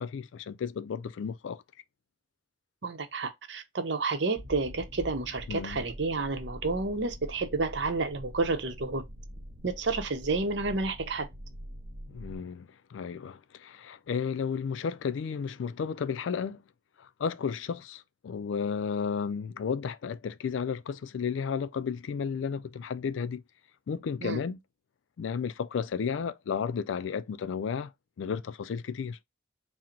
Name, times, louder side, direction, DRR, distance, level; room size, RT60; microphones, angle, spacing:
voice 1, 0.0-1.6 5.5-5.8 12.1-16.6 17.0-23.4 23.9-24.6 25.2-27.9 28.2-29.2, left 6 dB, 80° left, 0.4 m, -33 dB
voice 2, 2.8-9.1 9.6-11.3 24.2-24.4, right 3 dB, 65° right, 0.7 m, -30 dB
sound 1, 4.3-12.4, equal, 45° right, 1.0 m, -44 dB
3.8 x 2.1 x 4.3 m
head